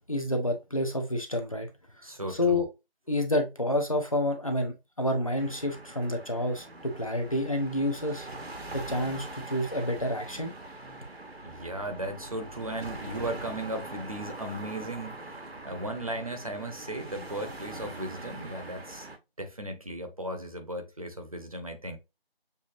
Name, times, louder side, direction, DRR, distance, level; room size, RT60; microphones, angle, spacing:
voice 1, 0.1-1.7 2.3-2.7 3.1-8.3 8.7-10.5, left 1 dB, 35° left, 0.8 m, -29 dB
voice 2, 2.0-2.6 11.4-19.1 19.4-22.0, right 1 dB, 35° right, 0.9 m, -36 dB
sound 1, 5.3-19.2, right 2 dB, 85° right, 1.2 m, -43 dB
6.8 x 2.7 x 2.6 m
figure-of-eight pair, 165°, 30 cm